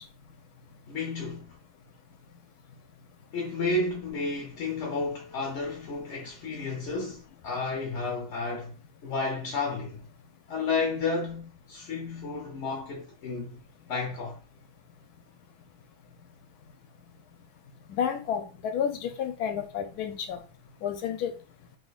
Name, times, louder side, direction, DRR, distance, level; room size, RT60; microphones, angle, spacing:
voice 1, 0.9-1.6 3.3-8.8 9.0-10.0 10.5-13.6 13.9-14.4, left 3 dB, 55° left, 0.8 m, -32 dB
voice 2, 17.9-20.4 20.8-21.3, left 8 dB, 80° left, 1.1 m, -30 dB
3.6 x 2.8 x 2.4 m
omnidirectional pair, 1.6 m